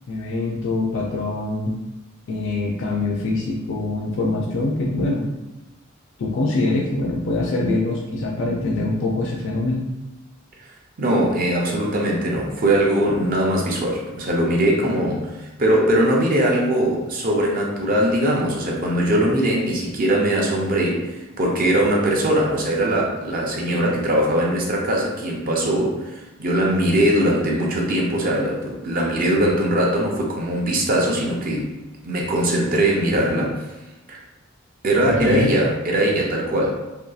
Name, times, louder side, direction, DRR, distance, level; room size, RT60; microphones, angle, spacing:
voice 1, 0.1-1.8 2.3-5.3 6.2-9.9 35.0-35.5, left 2 dB, 60° left, -2 dB, 0.4 m, -24 dB
voice 2, 11.0-31.7 32.0-33.7 34.1-34.2 34.8-36.7, right 1 dB, 45° right, -2 dB, 0.4 m, -21 dB
2.7 x 2.3 x 2.3 m, 1.0 s
head